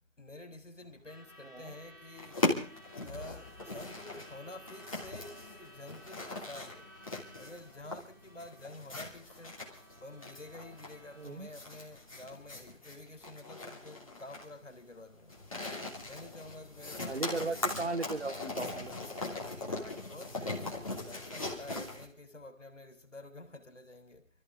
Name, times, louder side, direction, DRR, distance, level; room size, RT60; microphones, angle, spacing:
voice 1, 0.2-2.5 2.9-6.9 7.4-9.6 10.0-15.4 16.0-17.6 19.2-24.3, left 2 dB, 65° left, 3.6 m, -49 dB
Truck / Alarm, 0.8-12.7, equal, 15° right, 1.7 m, -56 dB
sound 1, 2.2-22.0, left 2 dB, 25° left, 2.8 m, -39 dB
voice 2, 11.2-11.5 17.1-19.0, right 3 dB, 55° right, 0.7 m, -36 dB
25.5 x 14.0 x 3.7 m
figure-of-eight pair, 175°, 39 cm